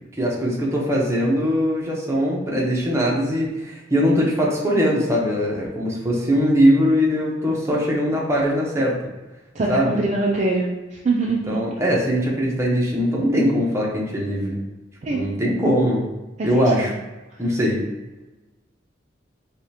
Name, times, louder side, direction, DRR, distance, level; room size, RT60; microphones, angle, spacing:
voice 1, 0.2-9.0 9.7-10.0 11.5-14.6 15.1-16.0 16.4-16.9 17.4-17.8, equal, 15° right, -4 dB, 0.8 m, -21 dB
voice 2, 9.5-11.6 15.0-15.2 16.4-16.9, right 3 dB, 35° right, -2 dB, 0.4 m, -23 dB
4.9 x 2.4 x 2.8 m, 1.1 s
head